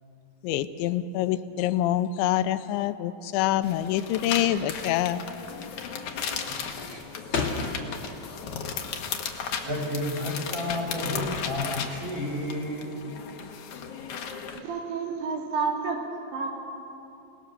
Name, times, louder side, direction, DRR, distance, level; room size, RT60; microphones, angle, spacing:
voice 1, 0.4-5.2, left 12 dB, 85° left, 11 dB, 3.0 m, -26 dB
sound 1, 3.6-14.6, left 6 dB, 60° left, 2.1 m, -36 dB
sound 2, 4.2-4.5 4.8-5.1 5.5-5.9 6.2-8.6 8.9-10.4, left 4 dB, 40° left, 2.0 m, -32 dB
voice 2, 6.4-7.2 9.6-13.1, left 1 dB, 35° right, -2 dB, 6.0 m, -32 dB
voice 3, 14.6-16.0 16.3-16.5, right 5 dB, 65° right, -1 dB, 4.6 m, -29 dB
29.5 x 19.0 x 6.7 m, 2.9 s
omnidirectional pair, 5.1 m